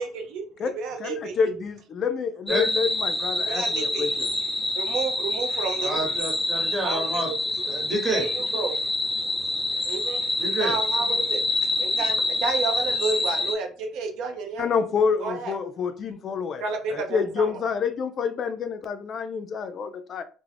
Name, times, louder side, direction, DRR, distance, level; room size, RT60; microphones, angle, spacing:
voice 1, 0.0-1.6 3.4-4.3 4.7-6.1 6.8-7.2 8.1-8.7 9.8-10.2 10.5-11.4 11.8-14.7 15.2-15.6 16.6-17.6, right 4 dB, 75° right, 0.6 m, -31 dB
voice 2, 1.0-4.3 14.6-16.6 16.9-20.2, left 6 dB, 45° left, 0.3 m, -27 dB
sound 1, 2.5-13.5, left 2 dB, 10° left, 0.7 m, -26 dB
voice 3, 5.8-7.3 7.7-8.2 10.4-10.7, right 1 dB, 25° right, 1.1 m, -29 dB
2.3 x 2.0 x 3.3 m
supercardioid pair, 90°, 0 cm